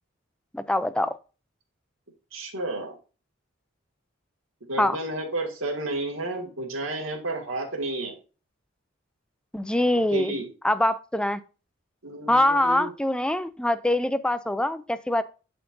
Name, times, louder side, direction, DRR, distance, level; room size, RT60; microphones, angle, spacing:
voice 1, 0.5-1.2 4.8-5.0 9.5-10.3 10.6-11.4 12.3-15.2, left 1 dB, 5° left, 0.3 m, -24 dB
voice 2, 2.3-3.0 4.7-8.2 10.1-10.5 12.0-12.9, right 2 dB, 80° right, 2.1 m, -31 dB
11.0 x 4.5 x 2.6 m
head